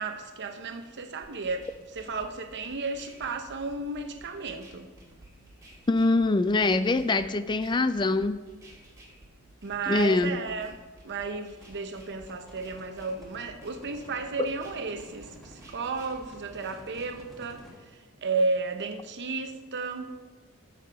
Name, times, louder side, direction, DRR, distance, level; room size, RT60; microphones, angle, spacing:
voice 1, 0.0-4.9 9.6-10.8 11.0-17.6 18.2-20.1, right 3 dB, 55° right, 6 dB, 0.8 m, -33 dB
sound 1, 1.2-17.2, right 1 dB, 15° right, 2.2 m, -53 dB
voice 2, 5.9-8.4 9.9-10.4, left 2 dB, 20° left, 12 dB, 0.4 m, -24 dB
sound 2, 11.5-17.8, equal, ahead, 2.0 m, -52 dB
11.0 x 7.4 x 3.5 m, 1.3 s
head